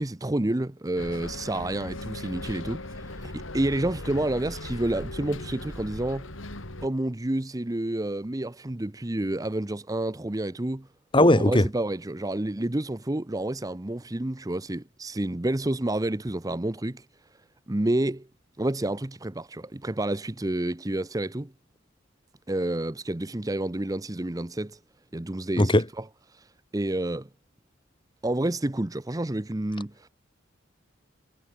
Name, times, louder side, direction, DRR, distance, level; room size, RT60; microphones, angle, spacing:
voice 1, 0.0-6.3 6.8-10.9 11.2-17.0 17.7-18.3 18.6-21.5 22.5-24.8 25.1-26.0 26.3-26.5 26.7-27.3 28.2-30.1, right 1 dB, 15° right, 0.7 m, -29 dB
Bus, 1.0-6.9, left 1 dB, 75° left, 3.7 m, -38 dB
voice 2, 11.1-11.7 25.6-25.8, left 1 dB, 25° left, 2.0 m, -18 dB
head